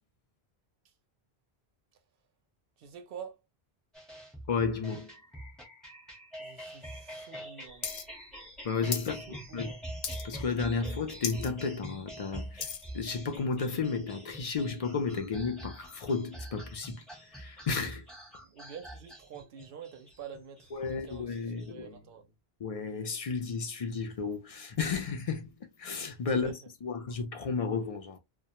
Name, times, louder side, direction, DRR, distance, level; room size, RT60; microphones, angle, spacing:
voice 1, 2.8-3.4 6.4-8.0 9.1-9.8 18.4-22.3 26.3-26.6, right 7 dB, 65° right, 0.7 m, -47 dB
sound 1, 3.9-21.7, right 1 dB, ahead, 0.8 m, -45 dB
voice 2, 4.5-5.1 8.6-9.7 10.2-12.7 12.9-18.1 20.7-22.0 22.6-28.2, left 5 dB, 55° left, 0.4 m, -33 dB
sound 2, 7.8-8.0 8.3-9.1 9.5-9.7 10.0-10.5 10.8-10.9 11.2-11.5 11.9-12.9 13.5-13.6, left 6 dB, 75° left, 0.8 m, -36 dB
2.1 x 2.1 x 2.8 m
omnidirectional pair, 1.1 m